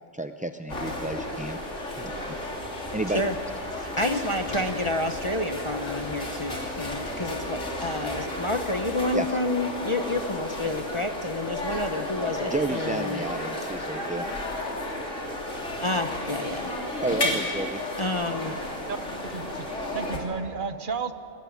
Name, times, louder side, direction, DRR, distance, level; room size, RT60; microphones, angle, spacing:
voice 1, 0.1-1.6 2.0-2.4 2.9-3.2 9.1-9.4 12.4-14.3 17.0-17.8, right 2 dB, 10° right, 7 dB, 0.4 m, -31 dB
sound 1, 0.7-20.2, left 1 dB, 90° left, 3.8 m, -33 dB
sound 2, 2.5-9.2, right 1 dB, 10° left, 4.0 m, -47 dB
voice 2, 3.7-13.2 15.8-16.7 17.2-17.4 18.0-18.5, left 1 dB, 30° left, 6 dB, 0.9 m, -29 dB
voice 3, 19.2-21.1, right 5 dB, 45° right, 11 dB, 1.1 m, -33 dB
22.0 x 19.5 x 9.4 m, 2.8 s
omnidirectional pair, 1.2 m